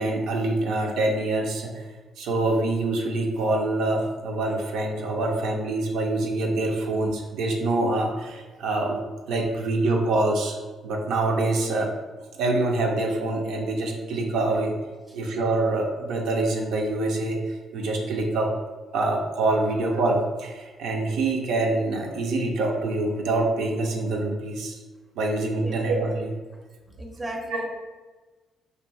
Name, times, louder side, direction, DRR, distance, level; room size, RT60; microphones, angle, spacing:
voice 1, 0.0-1.8 2.2-9.0 9.3-10.6 10.8-11.9 12.4-14.7 15.1-17.4 17.7-18.5 18.9-24.8 25.2-26.4 27.5-27.6, right 2 dB, 85° right, 0 dB, 0.3 m, -25 dB
voice 2, 27.0-27.7, equal, 15° right, 2 dB, 0.4 m, -34 dB
2.5 x 2.2 x 2.6 m, 1.3 s
cardioid pair, 90°, 0 cm